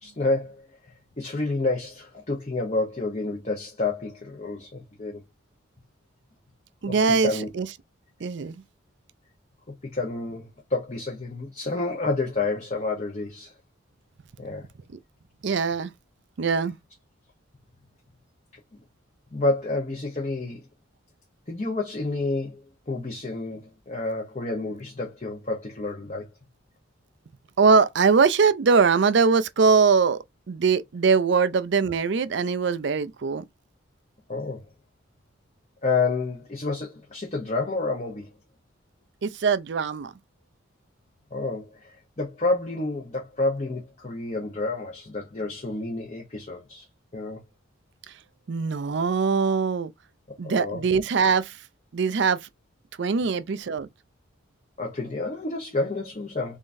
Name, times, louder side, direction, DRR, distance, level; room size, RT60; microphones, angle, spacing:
voice 1, 0.0-5.2 6.9-7.5 9.8-13.5 14.4-14.7 19.3-20.6 21.5-26.3 34.3-34.6 35.8-38.3 41.3-46.9 47.1-47.4 50.4-50.9 54.8-56.6, left 3 dB, 35° left, 0.9 m, -29 dB
voice 2, 6.8-7.7 8.2-8.6 15.4-15.9 16.4-16.7 27.6-30.2 30.5-33.4 39.2-40.1 48.5-49.9 50.4-51.6 51.9-52.5 53.0-53.9, right 5 dB, 55° right, 0.4 m, -22 dB
3.7 x 3.6 x 2.6 m
head